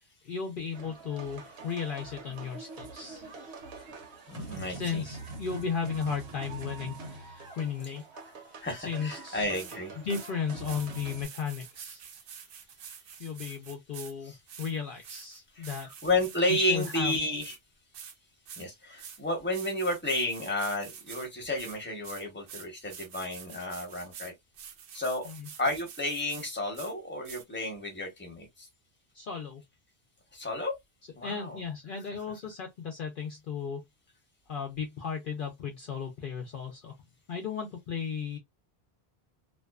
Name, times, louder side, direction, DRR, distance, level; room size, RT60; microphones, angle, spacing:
voice 1, 0.2-3.3 4.7-8.0 8.7-9.5 10.0-12.0 13.2-15.9 16.5-17.1 25.3-25.5 29.1-29.6 31.2-33.8 34.5-36.9 37.3-38.4, left 6 dB, 60° left, 0.7 m, -35 dB
sound 1, 0.7-11.3, right 3 dB, 85° right, 1.1 m, -44 dB
voice 2, 4.3-5.0 7.3-7.7 8.1-8.2 8.6-9.9 14.2-14.4 15.5-17.6 18.6-24.3 24.9-25.3 25.6-28.7 30.3-30.7 31.1-31.6, left 1 dB, 10° left, 0.9 m, -32 dB
sound 2, 9.1-9.2 9.5-9.8 10.1-10.3 10.6-14.1 14.5-17.6 17.9-18.1 18.5-18.7 19.0-19.2 19.5-21.3 21.6-26.5 26.7-26.9 27.3-27.4, right 7 dB, 65° right, 0.7 m, -47 dB
2.5 x 2.2 x 2.3 m
omnidirectional pair, 1.1 m